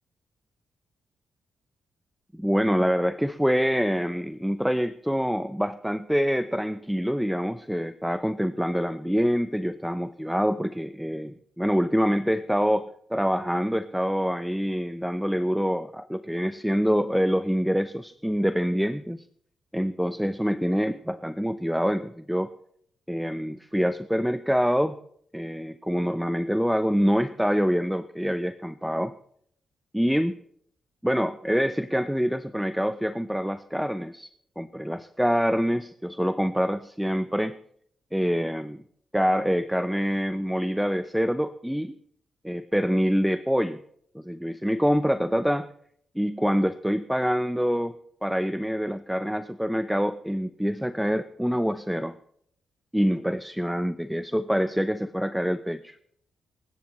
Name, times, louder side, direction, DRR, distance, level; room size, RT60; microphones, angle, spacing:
voice 1, 2.3-19.2 19.7-22.5 23.1-25.0 25.3-29.1 29.9-30.4 31.0-34.3 34.6-37.6 38.1-38.8 39.1-42.0 42.4-43.8 44.1-45.7 46.2-47.9 48.2-52.1 52.9-56.0, equal, ahead, 12 dB, 0.7 m, -26 dB
23.5 x 12.0 x 3.2 m, 0.65 s
supercardioid pair, 55°, 0 cm